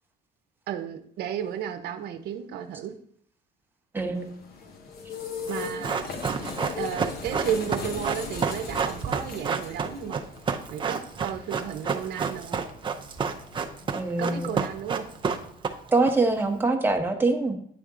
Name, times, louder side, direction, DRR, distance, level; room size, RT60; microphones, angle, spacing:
voice 1, 0.7-3.0 5.5-6.1 6.8-10.2 10.7-12.6 14.2-15.1, right 9 dB, 70° right, 8 dB, 0.7 m, -33 dB
voice 2, 3.9-4.3 13.9-14.5 15.9-17.5, right 3 dB, 10° right, 2 dB, 1.0 m, -24 dB
sound 1, 4.1-15.6, left 5 dB, 65° left, 1.0 m, -40 dB
Run, 5.5-16.1 16.4-16.5, right 5 dB, 30° right, 0.6 m, -29 dB
9.5 x 3.5 x 3.7 m, 0.65 s
cardioid pair, 110°, 17 cm